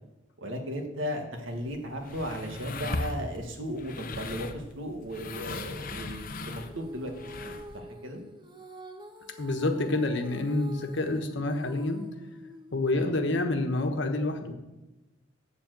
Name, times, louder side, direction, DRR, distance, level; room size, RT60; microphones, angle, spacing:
voice 1, 0.4-8.2 12.9-13.1, equal, 80° right, 3 dB, 1.7 m, -36 dB
sound 1, 1.5-7.8, left 3 dB, 45° left, 0.8 m, -38 dB
Female singing, 6.4-13.0, equal, 25° right, 1.0 m, -46 dB
voice 2, 9.4-12.1 12.7-14.5, left 2 dB, 65° left, 5 dB, 1.2 m, -28 dB
7.2 x 7.1 x 7.6 m, 1.0 s
head